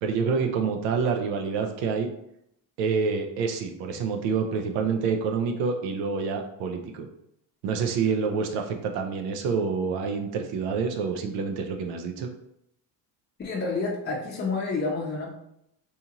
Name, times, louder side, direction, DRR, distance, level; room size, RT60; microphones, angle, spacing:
voice 1, 0.0-2.1 2.8-7.1 7.6-12.3, right 5 dB, 90° right, 4 dB, 0.5 m, -27 dB
voice 2, 13.4-15.3, left 3 dB, 25° left, -2 dB, 0.6 m, -29 dB
2.8 x 2.4 x 2.8 m, 0.78 s
supercardioid pair, 85°, 44 cm